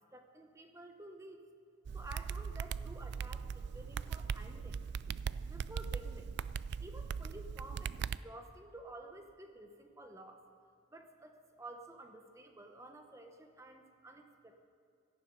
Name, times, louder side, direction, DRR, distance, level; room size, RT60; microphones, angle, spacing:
voice 1, 0.1-1.4 1.9-4.8 5.5-6.3 6.8-10.4 10.9-14.7, right 1 dB, 15° right, 5 dB, 0.9 m, -52 dB
sound 1, 1.8-8.2, right 6 dB, 55° right, 0.3 m, -40 dB
17.5 x 13.0 x 5.2 m, 2.3 s
head